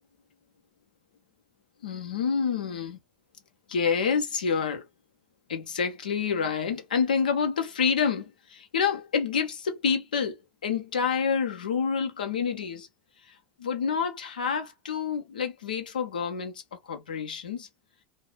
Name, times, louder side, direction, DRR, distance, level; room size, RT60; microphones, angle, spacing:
voice 1, 1.8-3.0 3.7-4.9 5.5-12.9 13.2-17.7, left 6 dB, 90° left, 0.6 m, -28 dB
2.3 x 2.1 x 3.0 m
hypercardioid pair, 85°, 4 cm